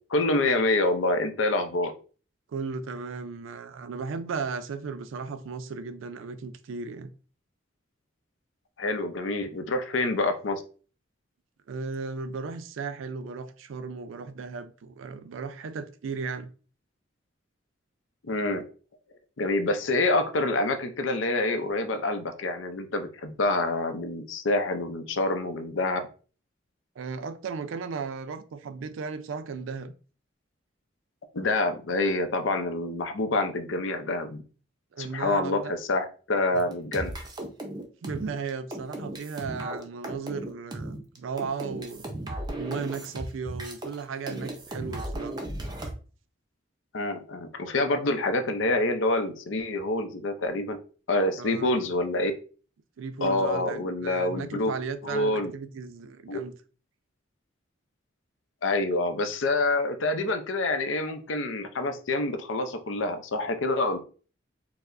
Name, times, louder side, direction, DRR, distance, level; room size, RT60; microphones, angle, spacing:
voice 1, 0.1-1.9 8.8-10.6 18.2-18.6 19.4-26.0 31.3-34.4 35.0-37.1 46.9-50.8 51.1-52.3 53.2-54.7 55.0-55.5 56.3-56.4 58.6-64.0, left 2 dB, 80° left, 0.5 m, -27 dB
voice 2, 2.5-7.1 11.7-16.5 27.0-29.9 34.9-35.7 37.7-42.1 42.6-45.4 51.4-51.9 53.0-56.5, right 5 dB, 85° right, 0.4 m, -35 dB
sound 1, 36.5-44.0 44.3-45.9, right 1 dB, 20° right, 0.5 m, -36 dB
4.5 x 2.0 x 2.5 m
head